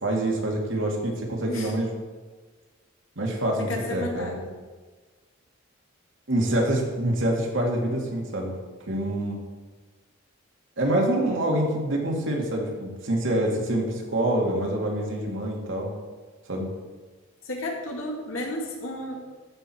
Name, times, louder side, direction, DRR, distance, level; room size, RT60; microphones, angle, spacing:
voice 1, 0.0-1.9 3.2-4.4 6.3-8.5 8.9-9.4 10.8-15.9 16.5-16.7, right 1 dB, 70° right, -1 dB, 2.1 m, -26 dB
voice 2, 3.7-4.5 17.5-19.2, left 1 dB, 85° left, 0 dB, 2.1 m, -32 dB
13.5 x 6.2 x 4.4 m, 1.4 s
head